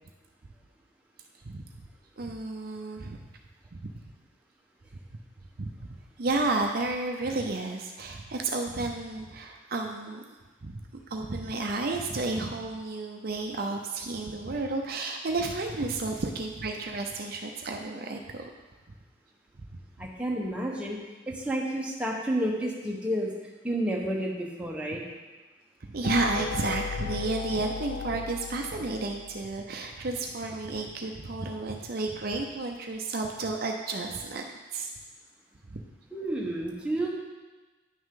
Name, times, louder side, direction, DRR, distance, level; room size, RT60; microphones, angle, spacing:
voice 1, 2.2-3.2 3.8-3.9 5.6-5.7 6.2-10.2 10.6-10.8 11.1-18.5 19.6-19.7 25.9-34.4 34.7-34.9 35.7-35.8, right 3 dB, 50° right, 2 dB, 0.6 m, -31 dB
voice 2, 20.0-21.0 21.3-23.3 23.6-25.0 36.1-37.1, right 1 dB, 5° right, -3 dB, 1.0 m, -30 dB
sound 1, 26.0-29.8, left 5 dB, 40° left, 0.3 m, -36 dB
9.8 x 6.2 x 3.7 m, 1.2 s
head